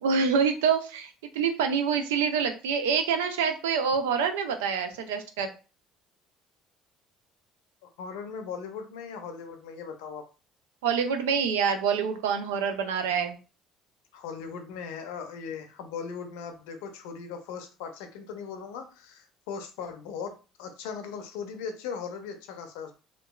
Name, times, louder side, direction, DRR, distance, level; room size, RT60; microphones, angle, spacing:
voice 1, 0.0-5.5 10.8-13.4, right 6 dB, 85° right, 7 dB, 0.4 m, -26 dB
voice 2, 7.8-10.2 14.1-20.3 20.6-22.9, left 6 dB, 80° left, 6 dB, 0.5 m, -38 dB
2.8 x 2.3 x 2.3 m, 0.34 s
hypercardioid pair, 70°, 0 cm